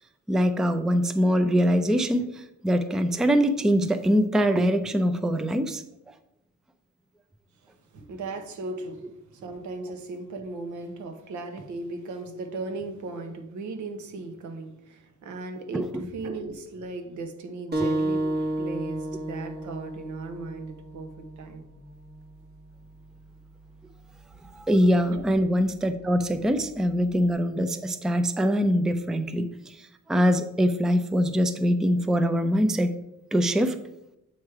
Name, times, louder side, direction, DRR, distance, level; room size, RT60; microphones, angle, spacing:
voice 1, 0.3-5.8 15.7-16.0 24.5-32.9 33.3-33.8, equal, ahead, 0.4 m, -23 dB
voice 2, 7.9-21.6 24.5-24.6 25.1-25.2, right 3 dB, 75° right, 1.0 m, -37 dB
sound 1, 17.7-22.8, right 1 dB, 35° right, 1.2 m, -32 dB
7.3 x 3.1 x 4.7 m
cardioid pair, 90°, 30 cm